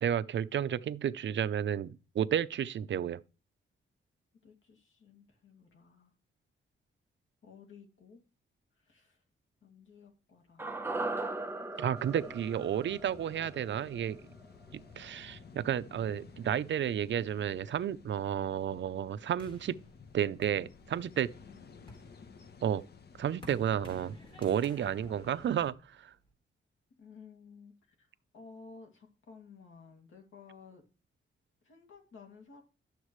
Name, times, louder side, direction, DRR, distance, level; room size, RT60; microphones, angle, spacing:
voice 1, 0.0-3.2 11.8-14.2 14.7-19.8 20.1-21.3 22.6-22.8 23.2-26.1, right 9 dB, 65° right, 0.6 m, -32 dB
voice 2, 4.4-6.1 7.4-8.2 8.8-9.2 9.6-10.7 11.7-12.4 21.4-22.0 24.7-25.0 27.0-27.7 28.0-28.1 28.3-30.8 31.6-32.6, left 5 dB, 75° left, 2.4 m, -55 dB
sound 1, 10.6-14.9 15.2-15.3, right 2 dB, 10° right, 0.8 m, -39 dB
sound 2, 11.9-25.7, left 5 dB, 55° left, 1.0 m, -55 dB
sound 3, 19.4-21.2 21.7-26.3, left 1 dB, 25° left, 3.9 m, -54 dB
11.5 x 7.3 x 3.2 m
wide cardioid pair, 120°, 20 cm